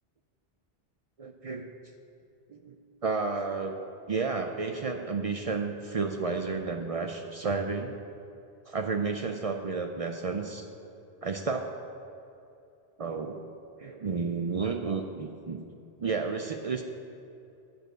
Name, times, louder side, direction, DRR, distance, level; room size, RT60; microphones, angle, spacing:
voice 1, 1.2-1.7 2.5-2.8 3.0-3.7 4.1-7.9 8.7-10.7 11.2-11.7 13.0-13.4 13.8-15.6 16.0-16.8, right 4 dB, 55° right, 4 dB, 0.4 m, -31 dB
8.8 x 5.3 x 7.6 m, 2.7 s
omnidirectional pair, 1.2 m